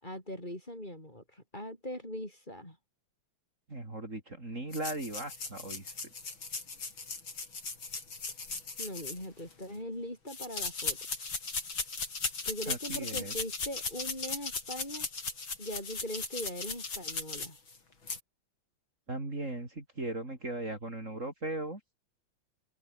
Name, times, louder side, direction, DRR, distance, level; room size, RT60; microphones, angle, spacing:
voice 1, 0.0-2.8 8.8-11.0 12.5-15.1 15.6-17.6, left 1 dB, 20° left, 7.3 m, -41 dB
voice 2, 3.7-6.0 12.7-13.3 19.1-21.8, right 2 dB, 35° right, 5.1 m, -38 dB
sound 1, 4.7-9.6 10.3-17.8 18.1-18.2, left 4 dB, 70° left, 5.2 m, -37 dB
omnidirectional pair, 2.3 m